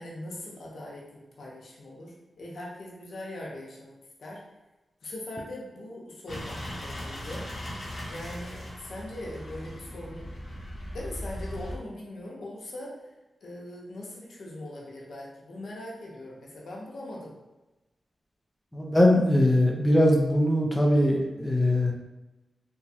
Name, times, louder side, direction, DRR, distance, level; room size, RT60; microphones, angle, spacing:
voice 1, 0.0-3.9 4.2-4.4 5.0-7.5 8.1-10.3 10.9-13.0 13.4-17.3, left 1 dB, 80° left, -3 dB, 0.7 m, -41 dB
sound 1, 6.3-11.7, equal, 40° left, 0.9 m, -38 dB
voice 2, 18.7-21.9, left 1 dB, 10° left, -2 dB, 0.5 m, -21 dB
3.0 x 2.3 x 2.7 m, 1.0 s
wide cardioid pair, 90°, 0 cm